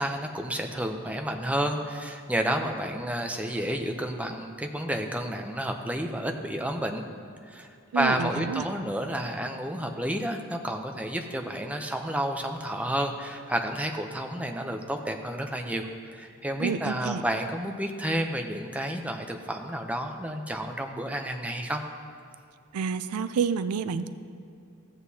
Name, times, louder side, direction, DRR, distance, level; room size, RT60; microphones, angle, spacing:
voice 1, 0.0-7.0 7.5-7.7 7.9-21.8, right 1 dB, 5° right, 4 dB, 0.5 m, -30 dB
voice 2, 7.9-8.6 16.6-17.2 22.7-24.1, right 6 dB, 85° right, 13 dB, 0.4 m, -29 dB
14.0 x 8.0 x 2.8 m, 2.4 s
head